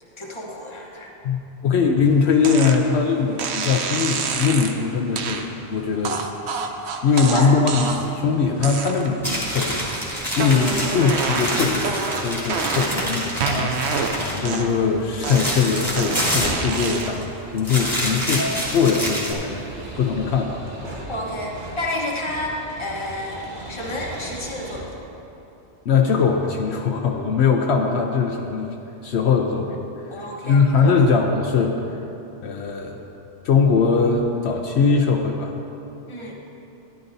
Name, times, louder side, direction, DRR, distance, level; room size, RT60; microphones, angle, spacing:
voice 1, 0.2-1.1 7.1-7.5 21.1-24.9 30.1-31.1 36.1-36.3, left 1 dB, 25° left, -2 dB, 1.2 m, -30 dB
voice 2, 1.2-6.2 7.0-9.9 10.4-17.3 17.5-19.6 20.0-20.6 25.9-28.7 29.0-29.8 30.1-31.7 32.4-33.1 33.4-35.5, left 5 dB, 75° left, 2 dB, 0.9 m, -21 dB
sound 1, 2.4-2.8 3.4-4.8 5.2-5.4 6.0-8.2 8.6-9.2 9.6-10.0 10.3-13.1 13.4-14.9 15.2-17.3, right 5 dB, 70° right, 0.9 m, -27 dB
sound 2, 7.3-24.8, right 1 dB, 45° right, 1.4 m, -40 dB
sound 3, 9.2-14.5 14.8-17.2 17.6-19.3, equal, ahead, 2.4 m, -27 dB
13.5 x 10.5 x 2.7 m, 2.9 s
omnidirectional pair, 1.2 m